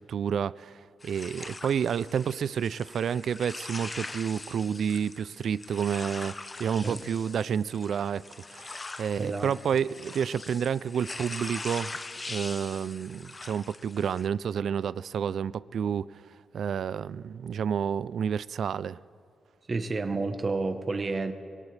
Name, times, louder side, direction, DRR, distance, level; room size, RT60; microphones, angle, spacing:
voice 1, 0.0-8.2 8.5-12.0 12.3-16.2 16.5-19.0, right 7 dB, 70° right, 0.3 m, -30 dB
sound 1, 1.0-14.3, left 3 dB, 25° left, 0.8 m, -42 dB
voice 2, 9.2-9.5 19.7-21.3, right 3 dB, 35° right, 1.0 m, -30 dB
23.5 x 18.5 x 3.3 m
cardioid pair, 90°, 0 cm